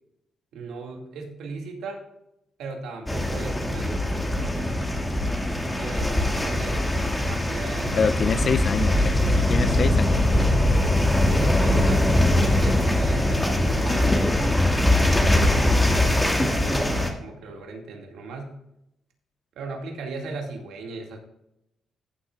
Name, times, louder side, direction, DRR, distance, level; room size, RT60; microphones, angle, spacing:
voice 1, 0.5-2.0 2.6-5.1 5.8-8.9 11.3-14.1 15.6-18.5 19.6-21.2, right 3 dB, 85° right, 1 dB, 2.2 m, -37 dB
sound 1, 3.1-17.1, left 1 dB, 10° left, 1.9 m, -22 dB
voice 2, 8.0-9.2 9.5-10.2, left 6 dB, 50° left, 15 dB, 0.5 m, -25 dB
15.0 x 7.8 x 2.4 m, 0.83 s
cardioid pair, 95°, 0 cm